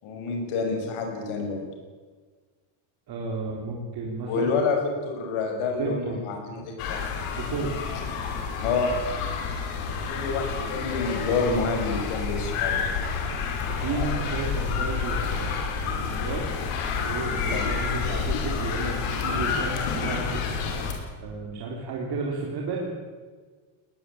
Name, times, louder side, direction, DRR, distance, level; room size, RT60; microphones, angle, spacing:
voice 1, 0.0-1.7 4.2-7.0 8.0-8.1 8.6-9.0 9.9-12.8 17.5-17.7, left 4 dB, 70° left, 3 dB, 6.2 m, -28 dB
voice 2, 3.1-4.5 5.8-6.6 7.4-7.9 13.7-16.7 16.9-20.7 21.2-22.9, right 3 dB, 45° right, -1 dB, 3.9 m, -33 dB
sound 1, 6.8-20.9, left 5 dB, 90° left, 5.3 m, -29 dB
21.0 x 20.0 x 8.6 m, 1.5 s
cardioid pair, 175°, 50 cm